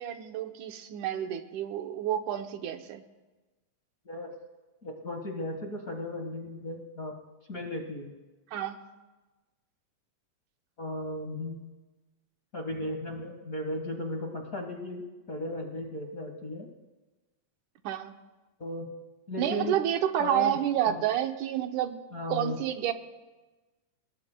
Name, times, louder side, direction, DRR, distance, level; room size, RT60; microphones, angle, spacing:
voice 1, 0.0-3.0 8.5-8.8 17.8-18.1 19.4-22.0 22.3-22.9, right 10 dB, 85° right, 6 dB, 2.4 m, -29 dB
voice 2, 4.8-7.1 7.5-8.1 10.8-11.6 12.5-16.7 18.6-18.9 19.3-19.8 20.2-20.6 20.9-21.0 22.1-22.6, left 1 dB, 35° left, 2 dB, 1.5 m, -36 dB
29.5 x 19.0 x 2.3 m, 1.2 s
omnidirectional pair, 3.5 m